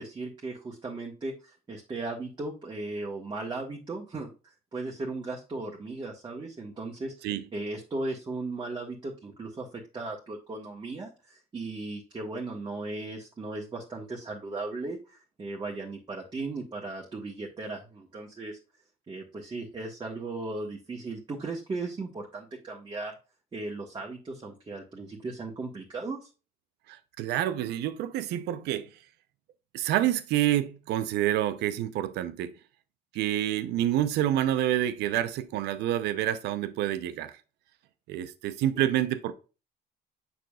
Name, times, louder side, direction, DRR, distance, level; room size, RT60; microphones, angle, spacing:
voice 1, 0.0-4.3 4.7-7.1 7.5-18.6 19.1-23.1 23.5-26.3, right 3 dB, 25° right, 1.4 m, -37 dB
voice 2, 26.9-28.9 29.7-32.5 33.1-37.3 38.1-39.3, right 12 dB, 85° right, 0.7 m, -28 dB
6.9 x 5.9 x 2.4 m
cardioid pair, 110°, 17 cm